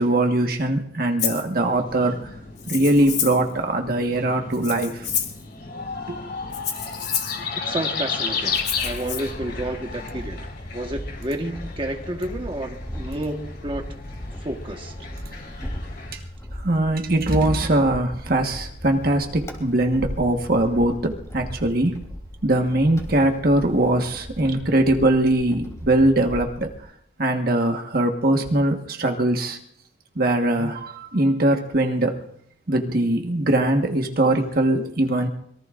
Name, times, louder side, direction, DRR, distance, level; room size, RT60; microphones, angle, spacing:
voice 1, 0.0-2.2 2.7-5.0 6.1-6.2 16.6-22.0 22.4-26.7 27.2-29.6 30.2-32.2 32.7-35.3, right 1 dB, 55° right, 1.4 m, -21 dB
Rattle (instrument), 1.2-1.5 2.6-3.5 4.5-5.4 6.5-7.4 8.5-9.2, left 8 dB, 40° left, 2.5 m, -28 dB
sound 1, 1.6-16.1, left 5 dB, 55° left, 4.2 m, -34 dB
voice 2, 7.6-10.5 10.7-13.9 14.4-15.1, right 1 dB, 30° right, 1.4 m, -30 dB
sound 2, 8.5-26.8, equal, 15° left, 3.3 m, -37 dB
25.5 x 22.0 x 2.5 m
head